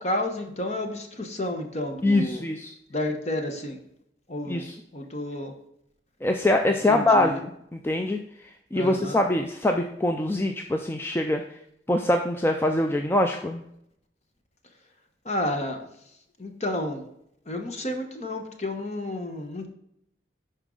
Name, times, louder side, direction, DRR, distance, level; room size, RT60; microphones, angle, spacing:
voice 1, 0.0-2.4 2.9-3.8 4.3-4.7 4.9-5.5 6.6-7.4 8.7-9.2 15.2-15.9 16.4-17.1 17.5-19.7, left 1 dB, 35° left, 4 dB, 1.1 m, -31 dB
voice 2, 2.0-2.7 4.5-4.7 6.2-8.2 8.7-11.4 11.9-13.6, left 1 dB, 10° left, 4 dB, 0.4 m, -24 dB
11.0 x 4.5 x 3.9 m, 0.75 s
head